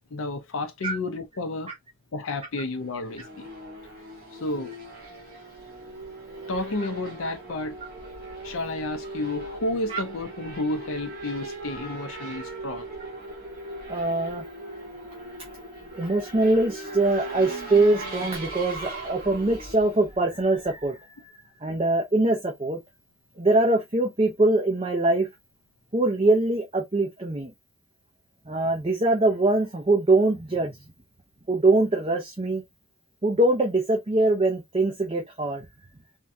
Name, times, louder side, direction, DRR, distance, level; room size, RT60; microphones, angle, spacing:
voice 1, 0.1-1.7 2.1-3.5 4.3-4.8 6.5-7.8 8.4-12.9, left 2 dB, 80° left, 0.6 m, -31 dB
Race car auto racing / Accelerating revving vroom, 2.7-20.9, right 1 dB, 45° right, 1.3 m, -39 dB
voice 2, 13.9-14.4 15.9-21.3 21.6-22.8 23.4-25.3 25.9-27.5 28.5-30.8 31.5-32.6 33.2-35.7, right 2 dB, 25° right, 0.5 m, -23 dB
3.5 x 2.2 x 2.6 m
head